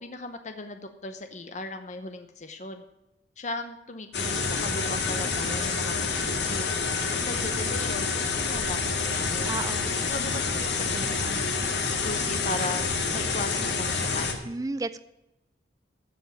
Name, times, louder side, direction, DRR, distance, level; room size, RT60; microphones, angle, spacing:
voice 1, 0.0-2.8 3.4-6.7 7.1-9.5 10.1-11.4 12.0-14.4, left 2 dB, 40° left, 7 dB, 0.9 m, -37 dB
sound 1, 4.1-14.3, left 4 dB, 70° left, 1.9 m, -28 dB
voice 2, 9.5-9.9 14.5-15.0, right 2 dB, 20° right, 13 dB, 0.4 m, -32 dB
15.0 x 5.3 x 9.0 m, 0.93 s
head